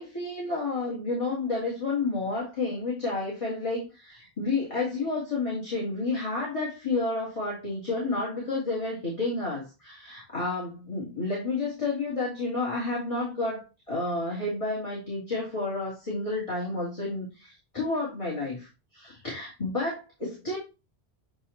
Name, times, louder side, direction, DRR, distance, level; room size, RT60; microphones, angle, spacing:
voice 1, 0.0-20.6, left 3 dB, 30° left, -5 dB, 3.0 m, -30 dB
8.6 x 3.1 x 4.3 m, 0.28 s
omnidirectional pair, 1.1 m